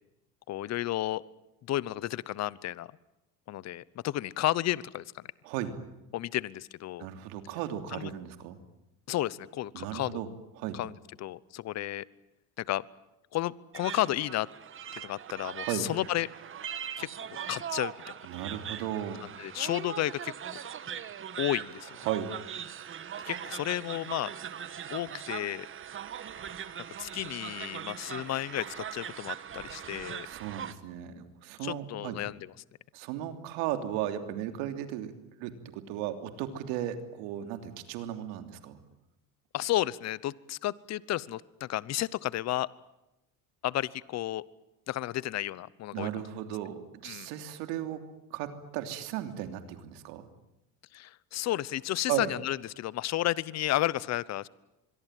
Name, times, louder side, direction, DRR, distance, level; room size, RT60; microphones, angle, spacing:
voice 1, 0.5-1.2 1.7-2.9 3.5-5.3 6.1-7.1 7.9-8.1 9.1-10.2 10.7-10.9 11.2-12.1 12.6-12.8 13.3-14.5 14.9-16.3 17.0-17.1 17.5-18.1 19.4-20.3 21.4-22.0 23.2-24.3 24.9-25.7 27.0-30.3 31.6-32.5 39.5-42.7 43.6-44.4 44.9-46.1 47.0-47.3 50.9-54.5, left 14 dB, 45° left, 21 dB, 0.9 m, -32 dB
voice 2, 7.0-8.6 9.7-10.3 10.6-10.8 15.7-15.9 18.2-19.2 22.0-22.3 30.2-32.2 32.9-35.1 35.4-38.8 45.9-48.0 48.3-50.3 52.1-52.3, right 11 dB, 90° right, 8 dB, 3.1 m, -35 dB
sound 1, 13.7-30.7, right 8 dB, 35° right, 1.5 m, -40 dB
25.5 x 22.5 x 9.2 m, 0.91 s
cardioid pair, 125°, 36 cm